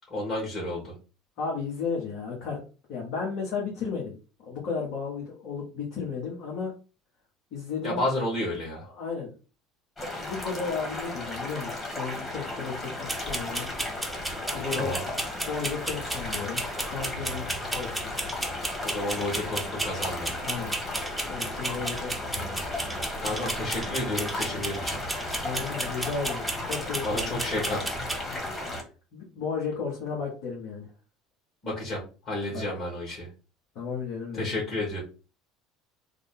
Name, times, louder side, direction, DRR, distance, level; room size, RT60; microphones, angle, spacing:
voice 1, 0.1-0.9 7.8-8.9 14.7-15.0 18.8-20.3 23.2-25.0 27.0-28.1 31.6-33.3 34.3-35.0, left 1 dB, 50° left, -5 dB, 1.9 m, -31 dB
voice 2, 1.4-2.6 2.9-4.2 4.5-6.7 7.5-8.0 8.9-9.3 10.1-13.7 14.5-14.9 15.5-18.1 20.4-20.8 21.2-22.6 23.3-23.4 25.4-27.3 28.3-28.4 29.1-30.8 32.5-32.6 33.7-34.5, left 5 dB, 65° left, -3 dB, 1.3 m, -34 dB
sound 1, 10.0-28.8, left 2 dB, 25° left, 1.4 m, -35 dB
sound 2, 13.1-28.2, right 1 dB, 5° right, 0.8 m, -35 dB
3.6 x 2.2 x 3.7 m, 0.34 s
hypercardioid pair, 80°, 0 cm